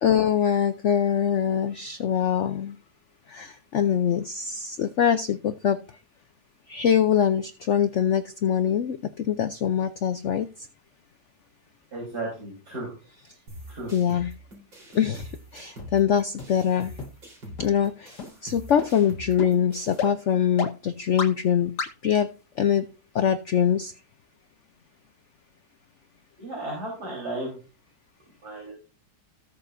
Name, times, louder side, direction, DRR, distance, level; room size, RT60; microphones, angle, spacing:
voice 1, 0.0-2.8 3.3-5.8 6.7-10.5 13.9-14.3 14.9-16.9 17.6-18.2 18.4-21.7 22.0-22.3 22.6-22.8 23.1-23.9, left 8 dB, 85° left, 11 dB, 0.6 m, -23 dB
voice 2, 11.9-12.9 13.7-13.9 26.4-27.5 28.4-28.7, right 2 dB, 55° right, -3 dB, 4.5 m, -34 dB
sound 1, 13.5-20.1, equal, 80° right, 4.7 m, -44 dB
sound 2, 15.2-15.3 15.8-15.9 16.4-16.5 17.0-17.1 17.6-17.7 18.2-18.3 18.8-18.9 19.4-19.5 20.0-20.1 20.6-20.7 21.2-21.3 21.8-21.9, left 4 dB, 65° left, 1.9 m, -30 dB
18.5 x 6.7 x 2.6 m, 0.35 s
omnidirectional pair, 2.0 m